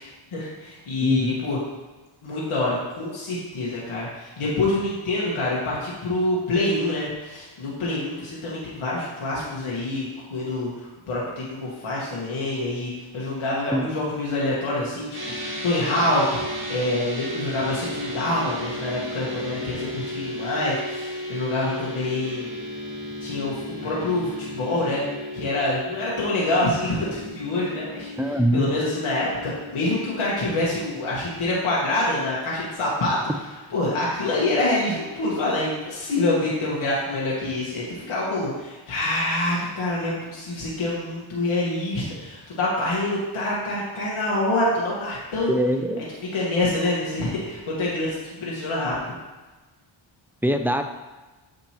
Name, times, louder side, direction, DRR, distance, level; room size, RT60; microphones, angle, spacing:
voice 1, 0.0-1.6 2.2-10.7 11.1-15.1 15.4-22.5 23.2-25.0 25.3-33.2 33.7-45.5 46.2-49.1, left 2 dB, 80° left, -6 dB, 1.6 m, -26 dB
voice 2, 1.0-1.3 13.7-13.9 28.2-28.7 45.5-46.0 50.4-50.8, right 1 dB, 5° right, 6 dB, 0.4 m, -22 dB
sound 1, 15.1-32.5, left 1 dB, 25° right, 1.8 m, -35 dB
7.7 x 5.2 x 2.9 m, 1.2 s
cardioid pair, 75°, 49 cm